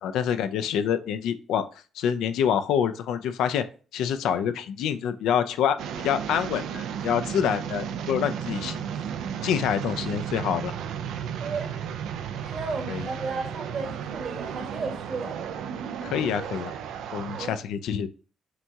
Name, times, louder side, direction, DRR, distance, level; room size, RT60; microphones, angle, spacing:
voice 1, 0.0-1.7 2.0-3.6 3.9-5.8 6.0-8.7 9.4-10.7 12.9-13.1 16.0-16.7 17.1-18.1, left 8 dB, 85° left, 0.4 m, -26 dB
sound 1, 5.8-17.5, right 8 dB, 85° right, 0.4 m, -34 dB
voice 2, 11.4-11.7 12.4-15.4 17.3-17.6, right 4 dB, 50° right, 1.4 m, -34 dB
5.8 x 2.3 x 2.7 m
cardioid pair, 90°, 0 cm